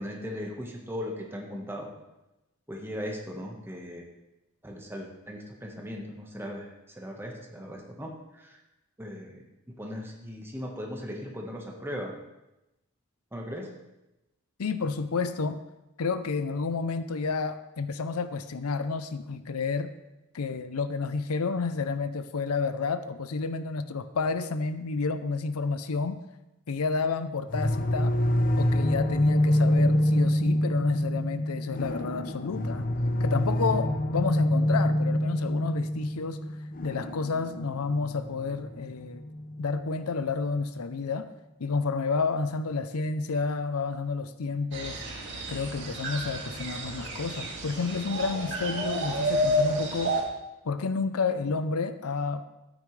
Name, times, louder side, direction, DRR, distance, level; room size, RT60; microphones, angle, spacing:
voice 1, 0.0-1.9 2.7-4.0 4.6-8.6 9.0-12.1 13.3-13.7, equal, 10° right, 0 dB, 1.3 m, -38 dB
voice 2, 14.6-15.6 16.0-19.9 20.3-26.2 26.7-28.2 28.6-32.9 33.2-36.4 36.8-39.3 39.6-41.3 41.6-45.0 45.5-50.2 50.6-52.4, left 4 dB, 90° left, 11 dB, 0.6 m, -30 dB
sound 1, 27.5-40.3, left 1 dB, 40° left, 0.7 m, -26 dB
sound 2, 44.7-50.2, equal, 55° right, 1.9 m, -30 dB
13.0 x 8.9 x 3.3 m, 0.96 s
head